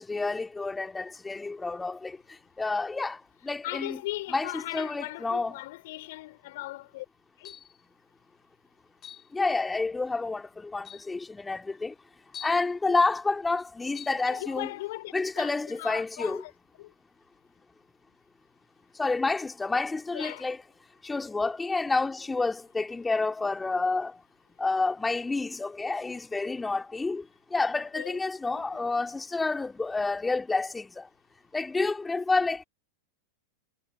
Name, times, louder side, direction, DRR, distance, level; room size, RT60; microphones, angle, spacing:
voice 1, 0.0-4.0 4.3-5.5 9.3-11.9 12.4-14.7 15.1-16.4 19.0-20.6 21.0-24.2 24.6-31.1 31.5-32.6, left 3 dB, 10° left, 2.8 m, -29 dB
voice 2, 3.6-7.1 7.4-7.5 14.3-16.9 20.1-20.5 27.7-28.2 28.6-29.0, left 19 dB, 50° left, 5.4 m, -39 dB
sound 1, 7.5-7.8 9.0-9.3 10.2-10.3 10.8-11.1 12.3-12.7 13.9-14.2, left 9 dB, 25° left, 2.7 m, -45 dB
figure-of-eight pair, 90°, 0 cm